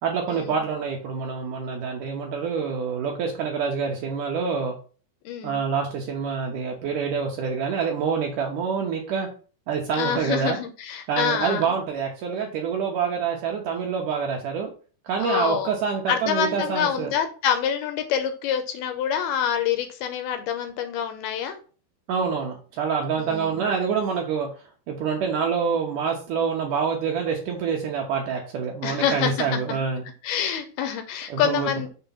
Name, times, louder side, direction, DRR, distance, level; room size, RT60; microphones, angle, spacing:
voice 1, 0.0-4.8 5.4-9.3 9.7-10.6 11.1-14.7 15.0-17.1 22.1-24.5 24.9-30.0 31.3-31.9, right 6 dB, 80° right, 1 dB, 1.9 m, -26 dB
voice 2, 5.3-5.6 10.0-11.6 15.2-15.7 16.1-21.6 23.2-23.6 28.8-29.5 30.2-31.9, left 8 dB, 80° left, 7 dB, 2.4 m, -26 dB
6.9 x 3.4 x 5.6 m, 0.38 s
omnidirectional pair, 4.9 m